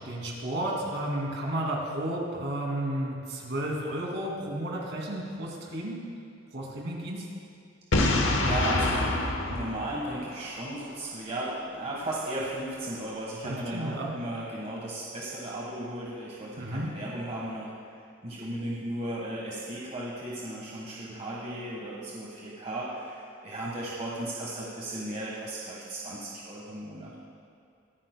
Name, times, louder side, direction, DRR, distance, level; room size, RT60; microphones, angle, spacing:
voice 1, 0.0-6.0 6.5-7.2 13.4-14.1 16.6-16.9, right 1 dB, 65° right, -2 dB, 2.5 m, -32 dB
Boom, 7.9-10.8, left 2 dB, 75° left, 1.0 m, -26 dB
voice 2, 8.3-9.2 9.5-17.7 18.2-27.1, right 1 dB, 35° right, -5 dB, 1.4 m, -35 dB
23.0 x 9.3 x 2.2 m, 2.4 s
head